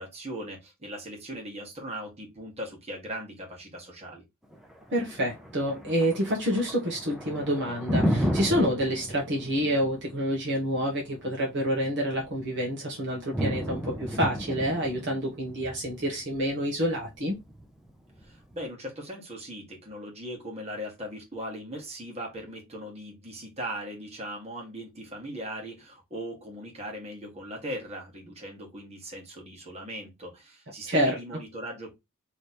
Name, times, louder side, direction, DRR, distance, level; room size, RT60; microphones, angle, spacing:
voice 1, 0.0-4.2 18.2-31.9, equal, 30° right, 1.7 m, -39 dB
Thunder, 4.5-18.5, equal, ahead, 0.7 m, -34 dB
voice 2, 4.9-17.3 30.9-31.2, equal, 55° right, 1.3 m, -28 dB
3.3 x 3.2 x 4.3 m
head